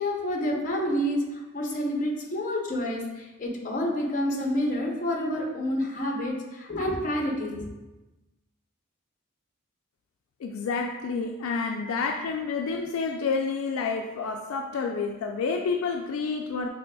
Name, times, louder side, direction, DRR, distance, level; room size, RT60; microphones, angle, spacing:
voice 1, 0.0-7.6, equal, 40° left, 0 dB, 0.7 m, -28 dB
voice 2, 10.4-16.7, left 4 dB, 75° left, 3 dB, 0.3 m, -29 dB
5.1 x 3.2 x 2.2 m, 1.1 s
head